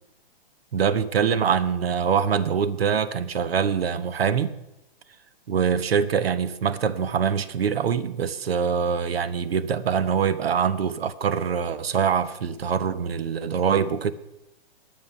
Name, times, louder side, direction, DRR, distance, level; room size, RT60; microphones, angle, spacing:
voice 1, 0.7-4.5 5.5-14.1, right 7 dB, 85° right, 1.1 m, -24 dB
21.5 x 7.7 x 5.7 m
hypercardioid pair, 155°, 29 cm